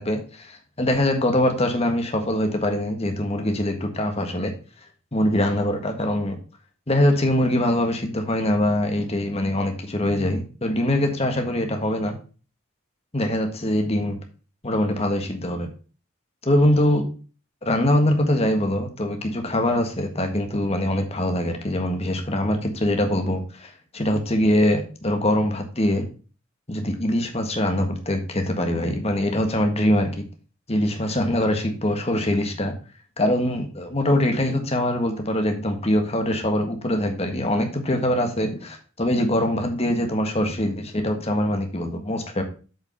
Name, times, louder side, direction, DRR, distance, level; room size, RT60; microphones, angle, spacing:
voice 1, 0.0-4.5 5.1-6.4 6.9-12.2 13.1-14.2 14.6-15.7 16.4-17.1 17.6-26.0 26.7-30.2 30.7-32.7 33.2-42.4, left 1 dB, 30° left, 5 dB, 1.5 m, -23 dB
7.9 x 5.3 x 5.6 m, 0.37 s
head